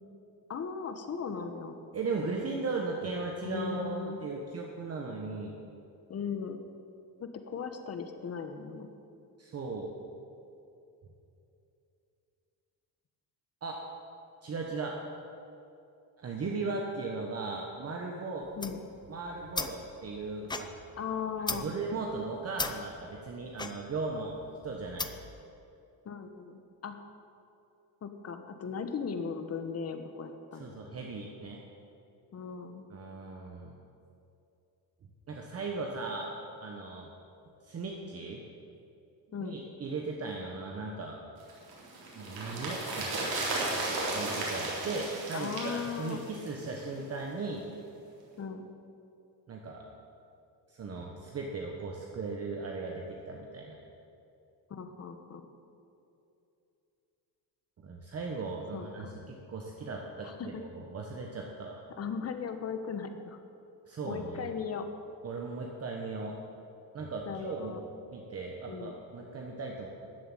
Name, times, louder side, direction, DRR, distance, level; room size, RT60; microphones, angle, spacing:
voice 1, 0.5-1.8 3.4-4.2 6.1-6.6 7.2-8.9 18.6-18.8 21.0-21.7 26.0-27.0 28.0-30.7 32.3-32.8 39.3-39.6 45.3-46.2 48.4-48.6 54.7-55.5 58.7-59.1 60.2-60.6 62.0-63.4 64.0-64.9 67.3-67.8 68.7-69.0, left 6 dB, 35° left, 7 dB, 1.1 m, -37 dB
voice 2, 1.9-5.6 9.4-9.9 13.6-13.8 14.4-15.0 16.2-18.5 19.1-20.7 21.5-24.4 24.6-25.1 30.6-31.6 32.9-33.8 35.3-36.3 36.6-37.1 37.6-38.4 39.4-41.2 42.1-43.3 44.1-47.6 49.5-49.9 50.7-53.8 57.8-60.3 60.6-61.8 63.9-64.5 65.2-66.4 66.9-67.7 68.1-69.9, right 3 dB, 35° right, 0 dB, 1.2 m, -37 dB
sound 1, 18.4-25.4, left 3 dB, 10° left, 0.5 m, -39 dB
sound 2, 41.5-46.9 47.2-47.3, right 2 dB, 60° right, 3.8 m, -35 dB
13.5 x 7.7 x 9.1 m, 2.7 s
cardioid pair, 155°, 41 cm